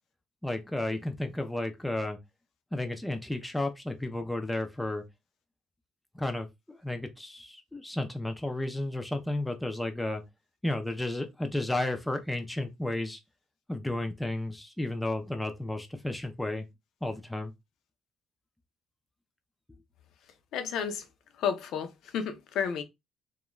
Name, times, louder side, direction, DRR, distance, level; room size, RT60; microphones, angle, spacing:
voice 1, 0.4-2.2 2.7-5.0 6.1-10.2 10.6-13.2 13.7-16.7 17.0-17.5, left 1 dB, 5° left, 0.4 m, -33 dB
voice 2, 20.5-21.0 21.4-21.9 22.1-22.8, left 7 dB, 65° left, 0.5 m, -31 dB
2.4 x 2.2 x 3.0 m
cardioid pair, 160°, 0 cm